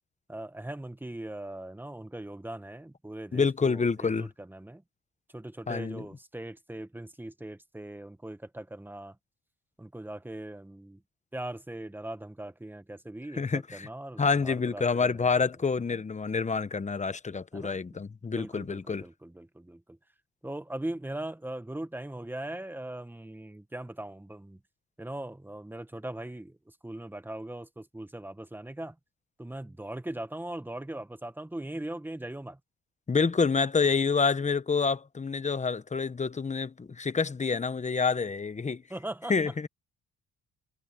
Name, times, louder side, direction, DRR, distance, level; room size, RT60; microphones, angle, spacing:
voice 1, 0.3-4.8 5.3-9.2 9.8-11.0 11.3-15.4 15.9-16.0 17.5-18.0 18.2-20.0 20.4-24.6 25.0-28.9 29.4-32.6 38.9-39.3, right 1 dB, 5° right, 1.1 m, -40 dB
voice 2, 3.3-4.3 5.7-6.0 13.3-13.9 14.2-19.0 33.1-38.8 39.3-39.7, left 5 dB, 25° left, 1.0 m, -27 dB
cardioid pair, 90°, 30 cm